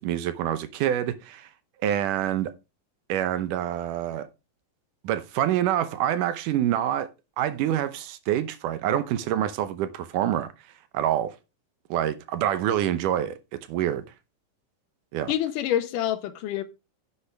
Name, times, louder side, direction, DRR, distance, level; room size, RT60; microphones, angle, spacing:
voice 1, 0.0-1.5 1.8-2.5 3.1-4.3 5.0-7.1 7.4-10.5 10.9-11.4 11.9-13.4 13.7-14.0 15.1-15.3, right 11 dB, 75° right, 2.3 m, -26 dB
voice 2, 15.3-16.6, left 11 dB, 75° left, 2.5 m, -27 dB
10.5 x 8.3 x 3.4 m
omnidirectional pair, 3.9 m